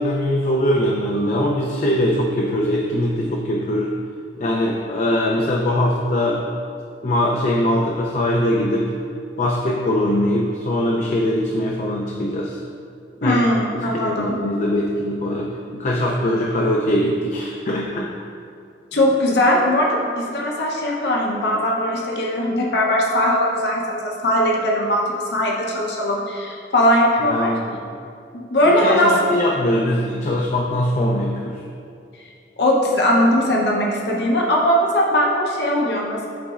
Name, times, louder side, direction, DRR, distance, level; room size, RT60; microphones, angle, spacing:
voice 1, 0.0-3.9 4.4-6.4 7.0-8.9 9.4-12.6 13.2-13.5 13.7-18.1 27.2-27.8 28.7-31.6, left 1 dB, 45° left, 0 dB, 0.4 m, -21 dB
voice 2, 13.2-14.4 18.9-27.5 28.3-29.2 32.6-36.3, left 1 dB, 70° left, -2 dB, 0.8 m, -19 dB
11.0 x 3.9 x 2.4 m, 2.4 s
head